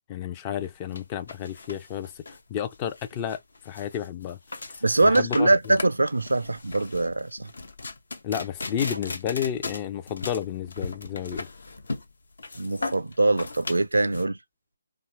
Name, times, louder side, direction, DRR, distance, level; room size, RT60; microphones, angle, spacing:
voice 1, 0.1-4.4 5.0-5.7 8.2-11.5, left 10 dB, 25° left, 0.4 m, -31 dB
sound 1, 0.6-14.2, left 3 dB, 70° left, 0.7 m, -37 dB
voice 2, 4.8-7.5 12.6-14.4, right 2 dB, 80° right, 0.4 m, -23 dB
2.7 x 2.3 x 3.0 m
figure-of-eight pair, 150°, 0 cm